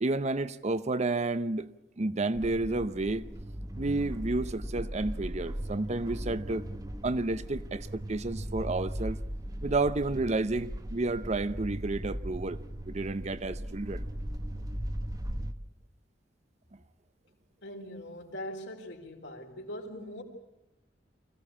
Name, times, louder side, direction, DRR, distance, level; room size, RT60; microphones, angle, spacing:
voice 1, 0.0-3.3 3.8-6.7 7.0-9.2 9.6-12.6 12.8-14.1, right 2 dB, 40° right, 0.7 m, -31 dB
sound 1, 2.3-15.5, equal, 20° right, 1.0 m, -38 dB
voice 2, 17.6-20.2, equal, 75° left, 4.1 m, -41 dB
25.0 x 16.0 x 8.6 m
head